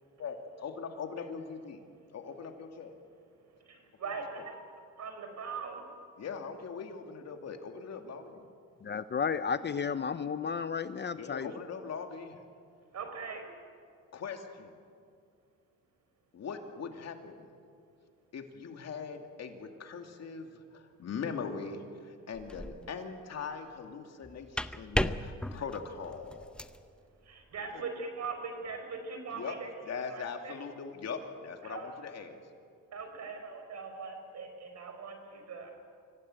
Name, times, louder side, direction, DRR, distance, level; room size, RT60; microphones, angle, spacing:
voice 1, 0.6-1.8 2.1-2.9 6.2-8.5 11.2-12.4 14.1-14.7 16.3-17.5 18.3-26.5 29.3-29.5 29.9-32.4, left 5 dB, 60° left, 4 dB, 2.6 m, -41 dB
voice 2, 3.7-4.5 5.0-5.8 12.9-13.4 27.3-29.7 30.1-30.6 31.6-31.9 32.9-35.7, right 5 dB, 60° right, 5 dB, 5.1 m, -41 dB
voice 3, 8.8-11.5, left 6 dB, 35° left, 13 dB, 0.7 m, -33 dB
sound 1, 22.3-22.9 24.2-26.8, left 1 dB, 5° left, 0.8 m, -35 dB
25.0 x 17.0 x 9.0 m, 2.3 s
cardioid pair, 90°, 30 cm